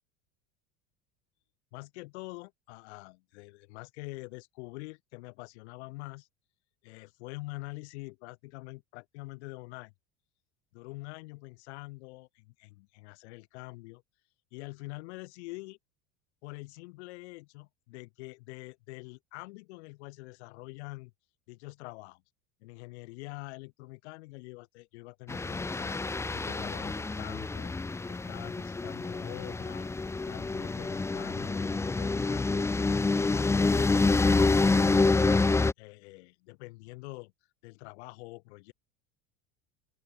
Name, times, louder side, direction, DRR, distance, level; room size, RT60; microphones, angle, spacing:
voice 1, 1.7-6.3 6.8-9.9 10.7-14.0 14.5-15.8 16.4-21.1 21.5-22.2 22.6-26.0 26.3-27.8 28.1-32.7 32.9-37.3 37.6-38.7, left 24 dB, 80° left, 4.1 m, -45 dB
sound 1, 25.3-35.7, left 3 dB, 10° left, 0.5 m, -27 dB
open air
supercardioid pair, 110°, 33 cm